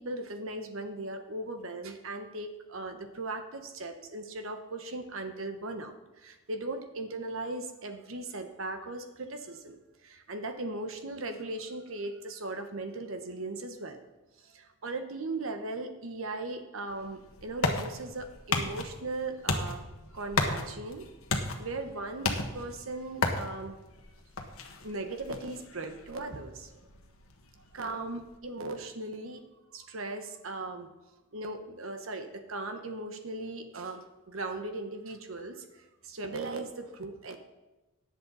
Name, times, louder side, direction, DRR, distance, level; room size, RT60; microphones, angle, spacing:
voice 1, 0.0-14.0 14.4-19.8 20.1-21.1 21.6-23.8 24.8-26.7 27.7-29.4 29.7-30.9 31.3-37.4, right 2 dB, 75° right, 6 dB, 1.2 m, -38 dB
sound 1, 16.9-28.4, left 3 dB, 90° left, 1.4 m, -35 dB
18.0 x 7.7 x 4.1 m, 1.0 s
head